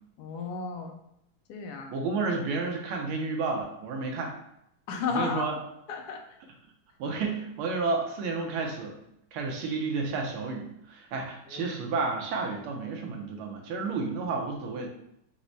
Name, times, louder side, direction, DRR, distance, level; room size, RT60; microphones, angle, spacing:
voice 1, 0.2-0.9 1.5-1.9 4.9-5.5 5.9-6.2 11.5-11.7, left 5 dB, 80° left, 2 dB, 0.9 m, -33 dB
voice 2, 1.9-4.3 5.1-5.6 7.0-9.0 9.3-14.9, right 4 dB, 80° right, 1 dB, 1.6 m, -31 dB
4.6 x 2.1 x 3.9 m, 0.78 s
omnidirectional pair, 2.4 m